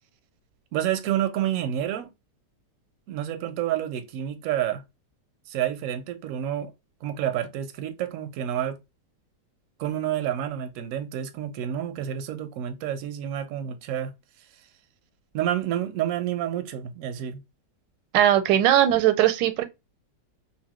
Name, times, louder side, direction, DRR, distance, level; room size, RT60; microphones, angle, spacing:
voice 1, 0.7-2.1 3.1-4.8 5.5-6.7 7.0-8.8 9.8-14.1 15.3-17.4, right 11 dB, 70° right, 0.8 m, -29 dB
voice 2, 18.1-19.7, right 11 dB, 85° right, 1.2 m, -19 dB
2.8 x 2.7 x 2.8 m
omnidirectional pair, 1.8 m